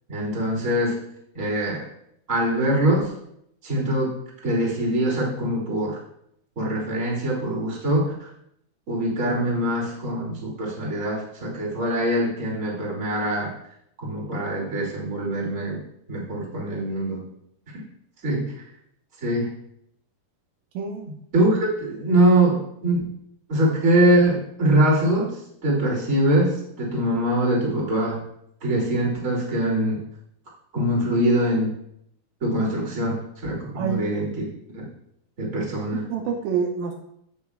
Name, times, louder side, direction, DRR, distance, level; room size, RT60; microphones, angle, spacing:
voice 1, 0.1-1.0 1.3-1.8 2.3-3.1 3.6-4.1 4.4-6.0 6.6-8.3 8.9-13.5 14.0-15.8 16.1-17.2 18.2-18.5 19.2-19.5 21.3-23.0 23.5-25.4 25.6-28.2 28.6-30.0 30.7-31.7 32.4-34.4 34.7-34.8 35.4-36.1, right 1 dB, 25° right, -4 dB, 2.3 m, -23 dB
voice 2, 20.7-21.1 33.8-34.1 35.9-36.9, right 6 dB, 80° right, 3 dB, 2.3 m, -27 dB
16.0 x 6.1 x 2.4 m, 0.73 s
omnidirectional pair, 4.3 m